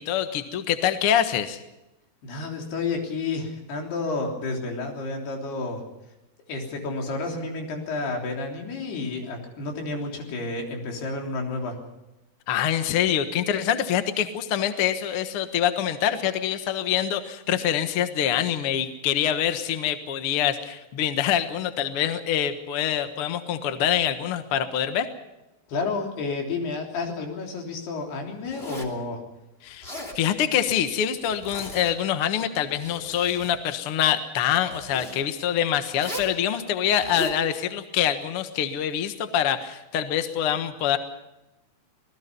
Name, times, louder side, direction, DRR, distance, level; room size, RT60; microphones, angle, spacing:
voice 1, 0.0-1.6 12.5-25.1 29.6-41.0, left 10 dB, 60° left, 9 dB, 1.4 m, -25 dB
voice 2, 2.2-5.8 6.5-11.8 25.7-29.2, left 3 dB, 80° left, 1 dB, 5.5 m, -30 dB
Zipper (clothing), 28.5-29.0 29.7-30.2 31.2-32.0 32.6-33.6 34.6-35.2 35.9-36.4 36.9-37.4, left 1 dB, 20° left, 2.5 m, -37 dB
26.5 x 19.5 x 5.4 m, 0.94 s
omnidirectional pair, 4.6 m